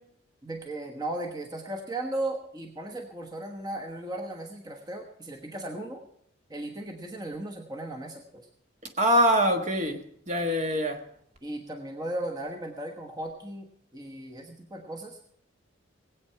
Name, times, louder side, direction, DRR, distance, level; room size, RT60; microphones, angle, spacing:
voice 1, 0.4-6.0 6.5-8.5 11.4-15.2, right 1 dB, 20° right, 1.2 m, -36 dB
voice 2, 9.0-11.0, equal, 35° right, 1.4 m, -24 dB
19.5 x 8.5 x 5.8 m
head